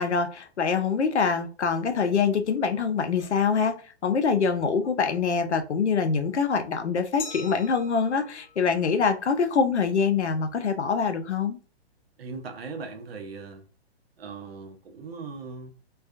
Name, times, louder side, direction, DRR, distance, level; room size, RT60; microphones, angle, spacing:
voice 1, 0.0-11.6, left 5 dB, 90° left, 0.5 m, -25 dB
Glass, 7.2-9.9, left 6 dB, 25° left, 0.6 m, -43 dB
voice 2, 12.2-13.6 14.2-15.7, right 4 dB, 60° right, 0.7 m, -39 dB
2.4 x 2.3 x 2.4 m
figure-of-eight pair, 120°, 33 cm